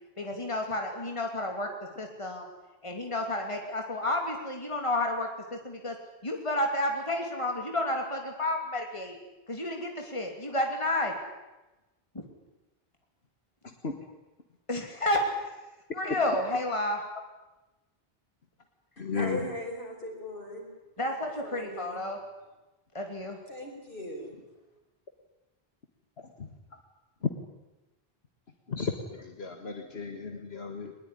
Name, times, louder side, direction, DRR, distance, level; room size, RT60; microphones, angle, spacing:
voice 1, 0.2-1.7 2.0-2.5 2.8-5.9 6.2-9.2 9.5-11.1 12.1-12.2 14.7-15.3 15.9-17.0 21.0-22.2 22.9-23.4, left 1 dB, 30° left, 2 dB, 3.0 m, -31 dB
voice 2, 13.6-14.0 16.1-16.2 19.0-19.5 26.2-26.8 27.2-27.3 28.7-30.9, left 5 dB, 80° left, 4 dB, 2.1 m, -34 dB
voice 3, 19.0-20.7 21.0-21.1 21.4-22.0 23.5-24.4, left 1 dB, 60° left, 1 dB, 6.1 m, -39 dB
22.0 x 21.0 x 10.0 m, 1.0 s
omnidirectional pair, 1.0 m